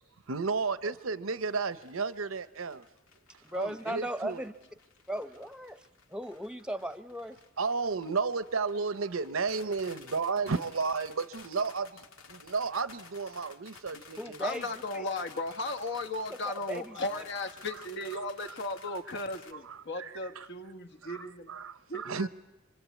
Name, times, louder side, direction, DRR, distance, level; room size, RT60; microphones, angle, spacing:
voice 1, 0.3-2.8 3.5-4.4 7.6-14.4 18.5-18.6 19.5-20.5 21.0-22.3, right 4 dB, 80° right, 0.9 m, -33 dB
sound 1, 1.4-19.5, left 5 dB, 90° left, 2.0 m, -54 dB
voice 2, 3.4-4.5 5.1-5.8 6.1-7.4 14.2-14.7 14.9-15.0 16.3-17.2, right 1 dB, 5° right, 0.9 m, -37 dB
voice 3, 14.4-21.5 21.9-22.3, left 2 dB, 60° left, 1.5 m, -36 dB
26.0 x 25.0 x 8.4 m
head